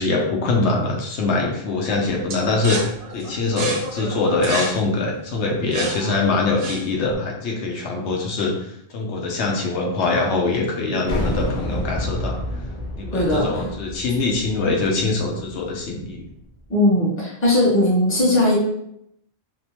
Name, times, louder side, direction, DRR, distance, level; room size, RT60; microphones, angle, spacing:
voice 1, 0.0-12.4 13.0-16.3, left 3 dB, 75° left, 0 dB, 0.9 m, -23 dB
sound 1, 2.3-7.1, right 3 dB, 80° right, 0.9 m, -31 dB
sound 2, 11.1-16.4, left 1 dB, 55° left, 0.6 m, -29 dB
voice 2, 13.1-13.5 16.7-18.6, left 1 dB, 15° left, -6 dB, 0.7 m, -18 dB
2.7 x 2.1 x 2.8 m, 0.75 s
omnidirectional pair, 1.2 m